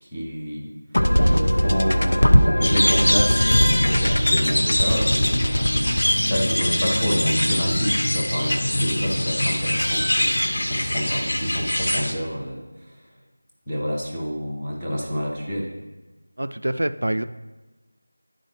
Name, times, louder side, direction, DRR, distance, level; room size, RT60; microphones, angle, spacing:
voice 1, 0.0-0.7 1.5-2.2 2.5-10.3 10.7-13.0 13.7-15.7, equal, 5° left, -12 dB, 0.5 m, -29 dB
sound 1, 0.9-8.3, equal, 85° left, 0.5 m, -21 dB
sound 2, 2.6-12.1, left 1 dB, 65° left, 1.0 m, -23 dB
voice 2, 16.4-17.2, right 1 dB, 65° right, 11 dB, 0.3 m, -25 dB
11.0 x 3.9 x 3.3 m, 1.2 s
figure-of-eight pair, 180°, 0 cm